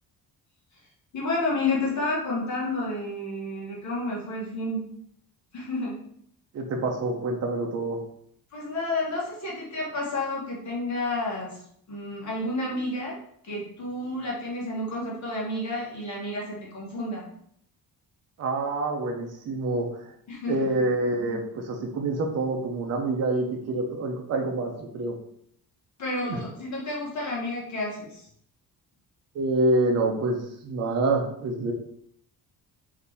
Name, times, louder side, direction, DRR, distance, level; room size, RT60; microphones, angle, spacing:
voice 1, 1.1-4.8 5.5-6.0 8.5-11.6 11.9-13.2 13.4-17.3 20.3-20.7 26.0-28.3, left 2 dB, 50° left, -4 dB, 1.4 m, -30 dB
voice 2, 6.5-8.0 18.4-20.1 20.5-25.2 26.2-26.4 29.3-31.7, right 2 dB, 45° right, 1 dB, 0.7 m, -27 dB
4.1 x 2.8 x 3.4 m, 0.68 s
cardioid pair, 180°, 37 cm